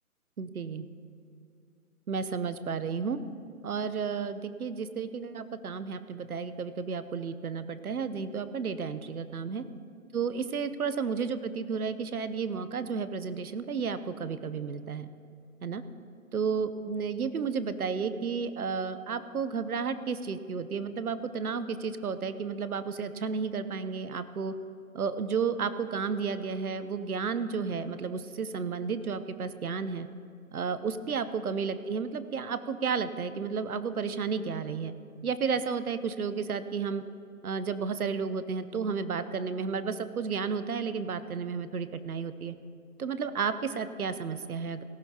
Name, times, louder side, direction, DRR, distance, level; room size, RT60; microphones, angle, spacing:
voice 1, 0.4-0.9 2.1-3.2 3.6-9.6 10.1-15.1 15.6-15.8 16.3-24.5 24.9-30.1 30.5-34.9 35.2-37.0 37.4-42.6 43.0-44.8, right 5 dB, 75° right, 12 dB, 0.9 m, -32 dB
18.0 x 14.5 x 2.9 m, 2.5 s
hypercardioid pair, 175°, 44 cm